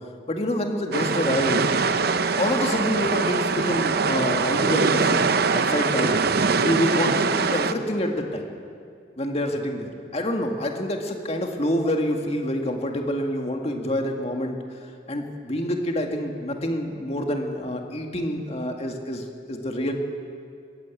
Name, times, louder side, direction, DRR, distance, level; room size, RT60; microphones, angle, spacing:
voice 1, 0.3-1.7 2.4-5.2 5.5-6.2 6.6-8.5 9.2-14.6 15.1-19.9, left 1 dB, 35° left, 3 dB, 2.0 m, -27 dB
sound 1, 0.9-7.7, right 4 dB, 55° right, 0.8 m, -23 dB
21.0 x 15.5 x 8.5 m, 2.3 s
head